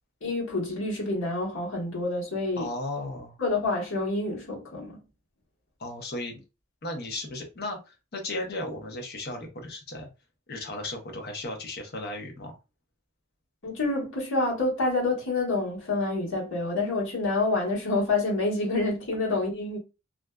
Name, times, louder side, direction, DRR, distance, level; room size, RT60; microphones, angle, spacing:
voice 1, 0.2-2.7 3.4-5.0 13.6-19.8, left 2 dB, 65° left, 1.2 m, -27 dB
voice 2, 2.6-3.4 5.8-6.4 6.8-10.1 10.5-12.6, left 2 dB, 45° left, 0.7 m, -35 dB
2.5 x 2.2 x 2.2 m
head